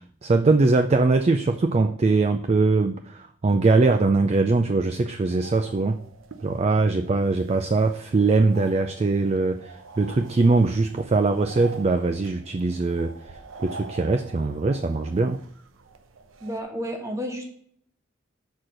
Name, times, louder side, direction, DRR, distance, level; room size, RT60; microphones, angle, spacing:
voice 1, 0.0-6.0 6.4-15.4, right 3 dB, 30° right, 0.3 m, -22 dB
sound 1, 5.3-16.6, right 4 dB, 80° right, 0.7 m, -45 dB
voice 2, 16.4-17.4, equal, 15° right, 1.2 m, -31 dB
6.2 x 4.2 x 6.3 m
head